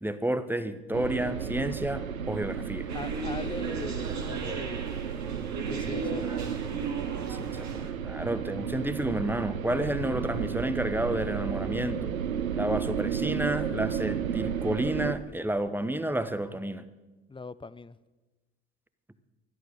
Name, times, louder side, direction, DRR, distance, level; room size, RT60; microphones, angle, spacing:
voice 1, 0.0-2.9 7.3-12.1 12.6-16.9, right 1 dB, 5° right, 12 dB, 1.1 m, -30 dB
sound 1, 0.9-15.2, right 8 dB, 90° right, 0.7 m, -33 dB
voice 2, 2.9-4.9 5.7-6.5 17.3-18.0, left 4 dB, 15° left, 17 dB, 0.6 m, -41 dB
sound 2, 2.9-7.9, right 2 dB, 45° right, 2.7 m, -38 dB
16.5 x 11.5 x 6.5 m, 1.2 s
figure-of-eight pair, 55°, 40 cm